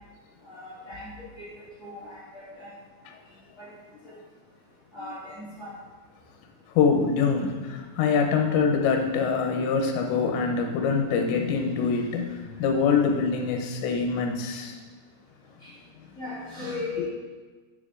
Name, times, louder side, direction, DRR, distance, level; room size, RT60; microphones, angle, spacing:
voice 1, 0.4-1.5 1.8-2.7 3.6-3.7 4.9-5.7 15.6-15.7 16.1-17.1, left 3 dB, 45° left, -10 dB, 1.9 m, -37 dB
voice 2, 6.7-14.8 17.0-17.1, left 5 dB, 80° left, 3 dB, 3.0 m, -24 dB
9.2 x 7.0 x 2.5 m, 1.3 s
omnidirectional pair, 5.2 m